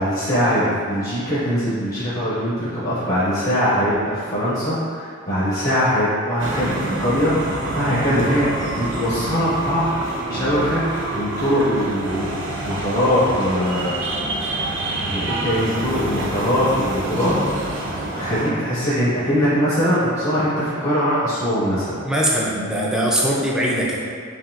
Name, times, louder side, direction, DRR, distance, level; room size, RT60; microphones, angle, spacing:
voice 1, 0.0-10.8 11.1-14.0 15.0-17.3 18.2-21.9, equal, 45° left, -12 dB, 1.1 m, -21 dB
sound 1, 6.4-18.5, right 2 dB, 60° right, 0.5 m, -27 dB
voice 2, 22.0-24.0, equal, 5° right, -5 dB, 0.4 m, -21 dB
5.7 x 2.8 x 2.4 m, 2.2 s
head